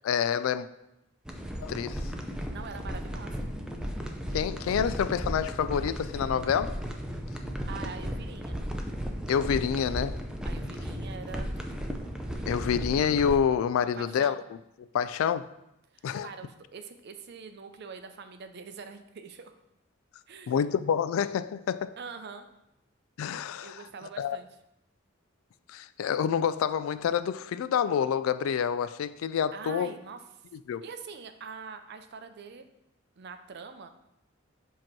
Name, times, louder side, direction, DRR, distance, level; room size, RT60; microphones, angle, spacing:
voice 1, 0.0-0.7 1.6-2.1 4.3-6.8 9.3-10.2 12.5-14.4 14.9-15.5 16.0-16.3 20.5-21.9 23.2-23.8 24.2-24.4 25.7-29.9 30.7-30.8, left 7 dB, 80° left, 0.3 m, -27 dB
sound 1, 1.3-13.4, equal, 5° right, 0.4 m, -35 dB
voice 2, 2.5-3.5 7.7-8.6 10.4-11.7 13.9-14.4 15.9-19.5 20.3-20.6 22.0-22.5 23.6-24.5 29.5-30.2 30.8-32.6 33.2-33.9, right 5 dB, 55° right, 0.5 m, -44 dB
7.4 x 3.0 x 4.5 m
head